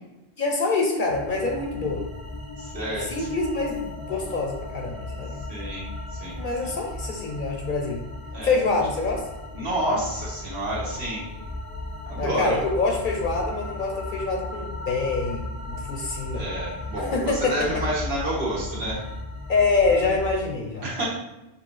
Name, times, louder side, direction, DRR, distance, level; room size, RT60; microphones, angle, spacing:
voice 1, 0.4-2.0 3.0-5.3 6.4-8.1 8.4-9.3 12.2-16.5 17.1-17.8 19.5-20.9, left 3 dB, 55° left, 2 dB, 0.7 m, -26 dB
sound 1, 1.1-20.3, left 2 dB, 20° right, 0.5 m, -36 dB
voice 2, 2.6-3.3 5.5-5.8 6.1-6.7 8.3-8.6 9.5-11.2 12.1-12.6 16.3-19.0 20.8-21.1, right 1 dB, 70° right, -5 dB, 1.6 m, -29 dB
6.1 x 2.7 x 3.1 m, 0.97 s
omnidirectional pair, 1.1 m